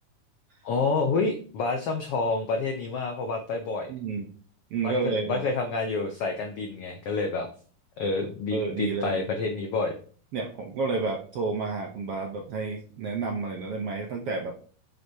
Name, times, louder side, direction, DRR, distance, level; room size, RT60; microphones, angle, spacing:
voice 1, 0.6-3.9 4.8-7.5 8.0-9.9, left 3 dB, 85° left, 4 dB, 1.2 m, -28 dB
voice 2, 3.9-4.3 4.7-5.4 8.5-9.5 10.3-14.5, right 4 dB, 70° right, 2 dB, 1.4 m, -30 dB
7.8 x 6.5 x 2.8 m, 0.42 s
omnidirectional pair, 3.7 m